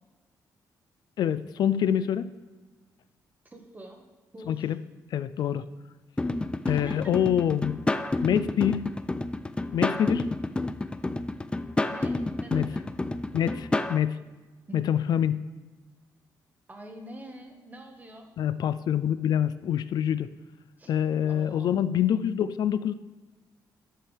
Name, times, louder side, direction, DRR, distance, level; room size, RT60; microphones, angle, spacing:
voice 1, 1.2-2.3 4.5-4.8 5.1-5.6 6.7-7.8 8.2-9.0 9.7-10.3 12.5-12.7 13.3-14.1 14.7-15.4 18.4-20.3 20.9-22.9, left 9 dB, 70° left, 14 dB, 0.4 m, -26 dB
voice 2, 3.4-4.0 4.3-4.7 6.7-7.1 11.8-12.8 14.7-14.8 16.7-18.3 20.8-20.9 21.3-21.8, right 1 dB, 25° right, 3 dB, 1.6 m, -45 dB
sound 1, 6.2-14.0, left 2 dB, 15° left, 0.4 m, -30 dB
12.0 x 7.5 x 3.4 m, 1.3 s
cardioid pair, 95°, 7 cm